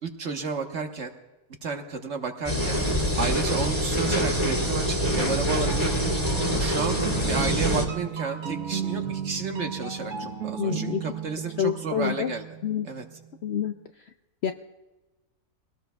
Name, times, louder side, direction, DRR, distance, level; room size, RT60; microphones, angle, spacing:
voice 1, 0.0-1.1 1.6-2.8 3.2-6.1 6.5-12.4 12.8-13.1, right 4 dB, 55° right, 4 dB, 1.4 m, -32 dB
sound 1, 2.5-7.9, equal, 25° left, 2.1 m, -25 dB
sound 2, 2.7-3.8 5.7-13.3, right 8 dB, 85° right, 1.6 m, -35 dB
voice 2, 10.6-11.1 11.6-12.3 12.6-12.9 13.4-13.8 14.4-14.5, left 8 dB, 65° left, 8 dB, 0.7 m, -27 dB
23.0 x 18.0 x 2.3 m, 1.1 s
omnidirectional pair, 1.5 m